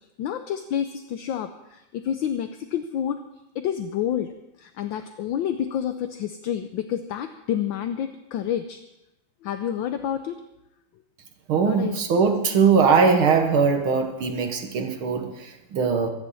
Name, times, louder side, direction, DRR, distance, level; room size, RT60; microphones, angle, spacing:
voice 1, 0.2-3.2 3.5-4.3 4.6-8.8 9.4-10.4 11.6-12.0, left 9 dB, 70° left, 8 dB, 1.4 m, -29 dB
voice 2, 11.5-16.1, right 5 dB, 75° right, 5 dB, 2.1 m, -21 dB
24.0 x 10.5 x 4.2 m, 0.93 s
omnidirectional pair, 2.4 m